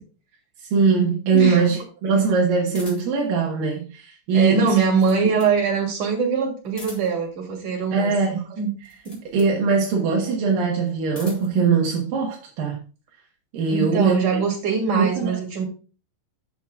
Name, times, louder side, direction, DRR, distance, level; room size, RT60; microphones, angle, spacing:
voice 1, 0.7-4.8 7.9-8.4 9.3-12.8 13.5-14.2 14.9-15.3, right 5 dB, 85° right, 3.0 m, -21 dB
sound 1, 2.7-3.3 4.5-5.6 6.6-7.3 8.8-9.6 10.8-11.6, left 1 dB, 15° left, 3.7 m, -43 dB
voice 2, 4.3-8.1 8.5-8.7 9.1-9.2 13.7-15.6, right 5 dB, 65° right, 4.1 m, -22 dB
12.0 x 7.9 x 2.4 m
omnidirectional pair, 3.9 m